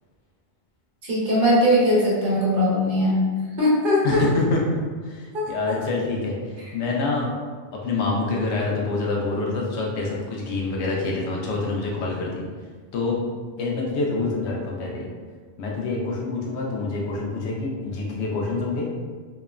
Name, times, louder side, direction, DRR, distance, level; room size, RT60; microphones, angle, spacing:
voice 1, 1.1-3.2 3.6-4.2 5.3-5.5, equal, 55° right, -7 dB, 0.9 m, -20 dB
voice 2, 4.0-4.8 5.0-7.4 7.7-12.5 12.9-13.2 13.6-15.1 15.6-18.9, left 3 dB, 90° left, -2 dB, 0.9 m, -26 dB
2.9 x 2.0 x 2.3 m, 1.5 s
omnidirectional pair, 1.1 m